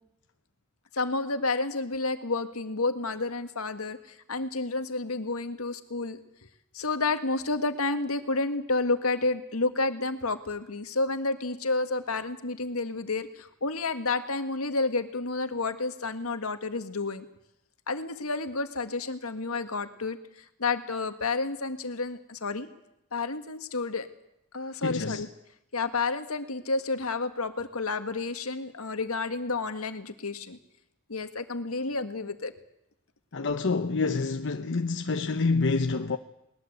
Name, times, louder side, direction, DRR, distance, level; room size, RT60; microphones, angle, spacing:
voice 1, 0.9-6.2 6.7-17.3 17.9-20.2 20.6-22.7 23.1-24.1 24.5-25.3 25.7-30.6 31.1-32.5, left 3 dB, 75° left, 1.8 m, -30 dB
voice 2, 24.8-25.3 33.3-36.2, left 3 dB, 60° left, 0.9 m, -27 dB
21.0 x 20.5 x 8.0 m
head